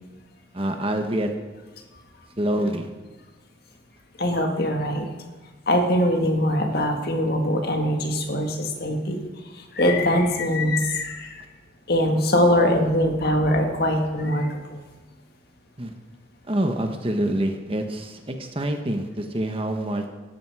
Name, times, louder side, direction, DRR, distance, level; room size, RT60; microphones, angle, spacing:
voice 1, 0.5-1.3 2.4-2.9 15.8-15.9 16.5-20.1, right 1 dB, 25° right, 5 dB, 1.2 m, -26 dB
voice 2, 4.2-5.1 5.7-9.2 9.5-11.4 11.9-14.8, left 1 dB, 50° left, 3 dB, 2.0 m, -22 dB
17.5 x 13.5 x 4.8 m, 1.2 s
head